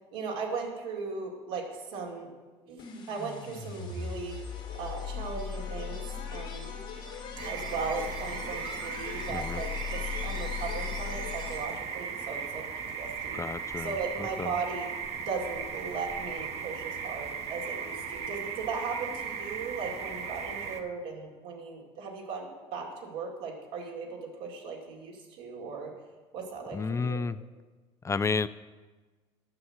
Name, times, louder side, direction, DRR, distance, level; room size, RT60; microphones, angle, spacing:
voice 1, 0.1-2.3 2.7-2.8 3.1-4.4 4.8-6.0 6.3-6.7 7.4-12.6 12.9-13.4 13.8-14.9 15.2-25.9 26.3-27.2, right 4 dB, 85° right, -1 dB, 2.3 m, -37 dB
sound 1, 2.8-11.9, left 6 dB, 85° left, 2.1 m, -38 dB
sound 2, 7.4-20.8, right 6 dB, 55° right, 1.1 m, -37 dB
voice 2, 9.3-9.6 13.3-14.6 26.7-27.4 28.0-28.5, left 4 dB, 20° left, 15 dB, 0.3 m, -31 dB
9.6 x 6.4 x 7.4 m, 1.3 s
supercardioid pair, 85°, 13 cm